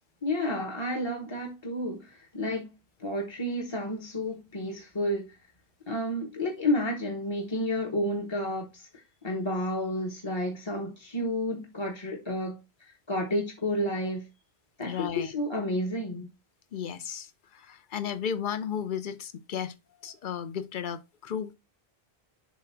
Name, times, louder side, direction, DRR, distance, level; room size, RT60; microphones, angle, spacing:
voice 1, 0.2-2.7 3.0-5.3 5.9-8.9 9.2-12.6 13.1-14.2 14.8-16.3, left 1 dB, 25° left, 1.0 m, -31 dB
voice 2, 14.8-15.3 16.7-19.7 20.0-21.5, left 8 dB, 55° left, 0.7 m, -34 dB
7.2 x 2.5 x 5.6 m
omnidirectional pair, 1.1 m